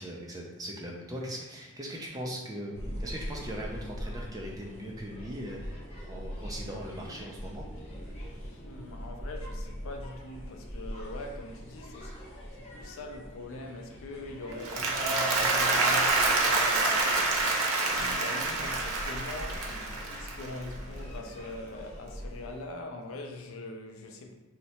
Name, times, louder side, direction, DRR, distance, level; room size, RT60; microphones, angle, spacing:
voice 1, 0.0-5.8 6.0-7.7, equal, 15° right, 0.4 m, -39 dB
sound 1, 2.7-22.6, equal, 30° left, 0.8 m, -42 dB
voice 2, 8.3-12.1 12.6-17.2 18.0-24.3, left 2 dB, 65° left, 0.4 m, -42 dB
Applause, 14.5-20.8, right 3 dB, 80° right, 0.6 m, -27 dB
2.7 x 2.1 x 4.1 m
head